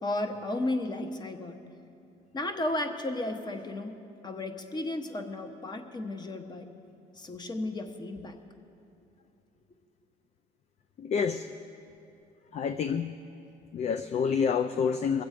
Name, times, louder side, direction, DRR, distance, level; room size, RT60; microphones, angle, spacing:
voice 1, 0.0-1.6 2.3-4.0 4.2-6.7 7.2-8.4, left 2 dB, 25° left, 7 dB, 1.1 m, -34 dB
voice 2, 11.0-11.5 12.5-13.1 13.7-15.2, left 6 dB, 40° left, 10 dB, 0.5 m, -28 dB
22.0 x 7.9 x 5.0 m, 2.6 s
cardioid pair, 110°, 17 cm